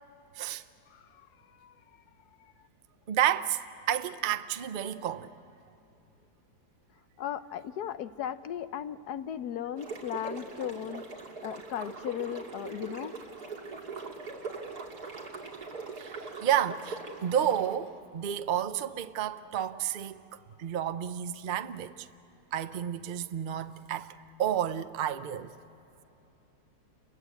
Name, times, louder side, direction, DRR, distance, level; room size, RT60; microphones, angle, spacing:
voice 1, 0.9-1.7 2.4-2.5 7.2-13.2 15.9-16.0, left 10 dB, 75° left, 1.3 m, -37 dB
voice 2, 3.1-5.3 16.0-20.2 20.6-22.1 22.5-24.1 24.4-25.5, right 10 dB, 50° right, 0.6 m, -31 dB
sound 1, 9.8-17.7, right 4 dB, 70° right, 3.0 m, -41 dB
29.0 x 22.5 x 8.3 m
omnidirectional pair, 1.8 m